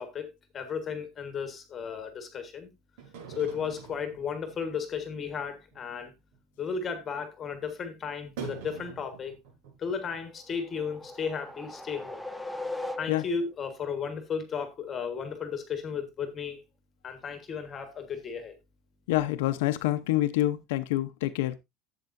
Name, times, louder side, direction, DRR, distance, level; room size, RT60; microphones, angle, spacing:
voice 1, 0.0-2.7 3.3-6.1 6.6-9.4 9.8-12.2 13.0-16.6 17.0-18.6, left 6 dB, 20° left, 1.3 m, -34 dB
sound 1, 3.0-5.0 5.4-5.5 5.7-5.8 6.1-6.4 6.7-6.8 8.4-10.2 10.5-10.6 11.0-11.1 11.5-11.6, right 7 dB, 80° right, 4.3 m, -44 dB
sound 2, 10.3-13.5, left 2 dB, ahead, 0.6 m, -39 dB
voice 2, 19.1-21.6, left 15 dB, 85° left, 0.7 m, -27 dB
12.0 x 7.9 x 2.6 m
cardioid pair, 180°, 0 cm